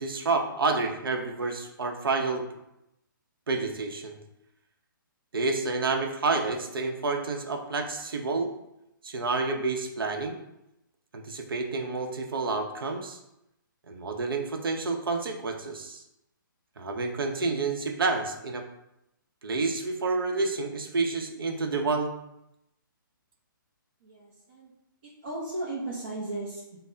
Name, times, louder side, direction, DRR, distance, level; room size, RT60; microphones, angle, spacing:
voice 1, 0.0-2.5 3.5-4.2 5.3-8.5 9.0-10.4 11.1-13.2 13.9-16.0 16.8-18.6 19.4-22.1, right 3 dB, 80° right, 3 dB, 0.7 m, -29 dB
voice 2, 24.0-24.7 25.2-26.8, right 2 dB, 30° right, -6 dB, 0.6 m, -35 dB
5.4 x 2.0 x 2.6 m, 0.86 s
hypercardioid pair, 175°, 12 cm